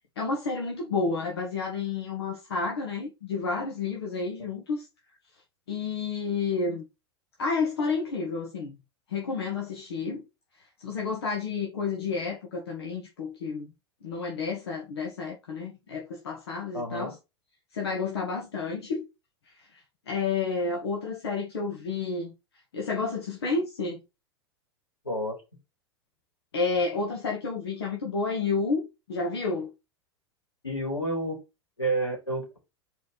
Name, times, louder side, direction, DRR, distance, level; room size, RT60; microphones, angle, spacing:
voice 1, 0.1-4.9 5.7-6.8 7.4-8.8 9.1-10.2 10.8-13.7 14.0-17.1 17.7-19.1 19.6-19.8 20.1-22.3 22.7-24.0 26.5-29.7, left 4 dB, 70° left, 1.6 m, -30 dB
voice 2, 16.7-17.1 25.0-25.4 30.6-31.4 31.8-32.6, right 1 dB, 85° left, 3.3 m, -30 dB
5.1 x 4.5 x 4.1 m
figure-of-eight pair, 85°, 14 cm